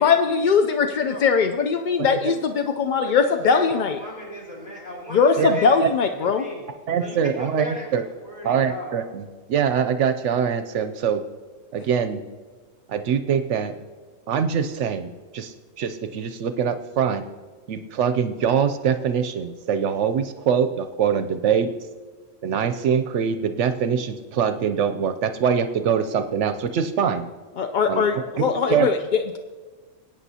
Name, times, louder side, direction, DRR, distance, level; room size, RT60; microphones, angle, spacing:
voice 1, 0.0-4.0 5.1-6.4 27.6-29.4, left 6 dB, 60° left, 7 dB, 0.5 m, -21 dB
voice 2, 3.0-5.8 6.0-6.7 7.0-7.9 8.2-8.9, equal, 35° left, -5 dB, 4.0 m, -36 dB
voice 3, 6.9-8.0 8.4-11.2 11.7-12.2 12.9-13.7 14.3-17.3 17.7-21.7 22.4-27.3 27.9-28.0 28.4-28.9, right 7 dB, 70° right, 9 dB, 0.8 m, -23 dB
21.0 x 9.0 x 2.8 m, 1.4 s
omnidirectional pair, 1.3 m